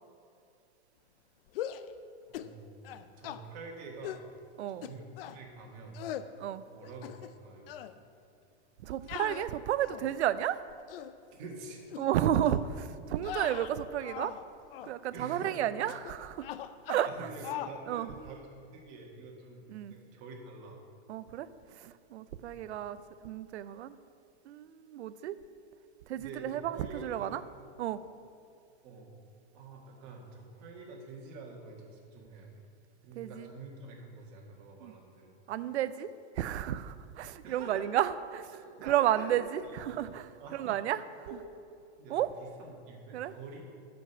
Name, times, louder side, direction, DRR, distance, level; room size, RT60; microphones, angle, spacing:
sound 1, 1.5-1.9 2.3-2.6 2.8-3.4 4.0-4.3 4.8-5.4 5.9-6.3 6.8-7.4 7.7-7.9 9.1-10.1 10.7-11.1 11.9-12.1 12.4-12.7 13.2-14.4 14.7-14.9 15.9-16.1 16.4-17.2 17.4-17.8, left 11 dB, 60° left, 0.5 m, -40 dB
voice 1, 2.3-4.2 4.8-6.0 6.7-7.8 9.0-9.2 11.3-11.9 15.1-15.6 17.0-19.6 20.0-20.8 22.4-22.6 26.2-27.3 28.8-29.1 29.5-32.6 33.0-35.4 37.4-37.8 38.5-40.0 40.4-40.8 41.3-41.4 42.0-43.7, right 3 dB, 40° right, 0 dB, 1.9 m, -47 dB
voice 2, 4.6-4.9 6.4-6.6 8.8-10.6 12.0-14.3 14.8-16.5 16.9-17.1 17.9-18.1 19.7-19.9 21.1-21.5 21.8-23.0 23.2-23.9 24.5-25.4 26.1-27.4 27.8-28.0 33.2-33.5 34.8-34.9 35.5-36.1 36.4-38.5 38.8-41.0 42.1-42.3 43.1-43.3, right 11 dB, 90° right, 14 dB, 0.6 m, -32 dB
11.0 x 5.3 x 6.8 m, 2.4 s
supercardioid pair, 160°, 33 cm